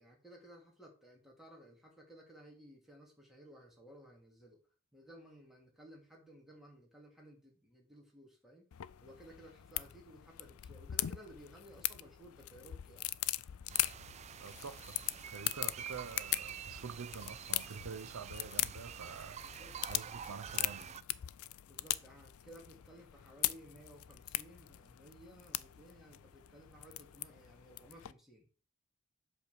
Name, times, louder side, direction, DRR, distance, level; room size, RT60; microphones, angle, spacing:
voice 1, 0.0-4.6 4.9-8.7 9.0-13.1 19.6-19.8 21.7-28.5, right 1 dB, ahead, 2.7 m, -57 dB
sound 1, 8.7-28.1, left 16 dB, 80° left, 0.4 m, -41 dB
sound 2, 13.7-21.0, right 8 dB, 30° right, 0.3 m, -47 dB
voice 2, 14.4-15.0 15.3-19.4 19.9-20.9, right 5 dB, 75° right, 0.6 m, -47 dB
8.1 x 4.2 x 6.9 m
head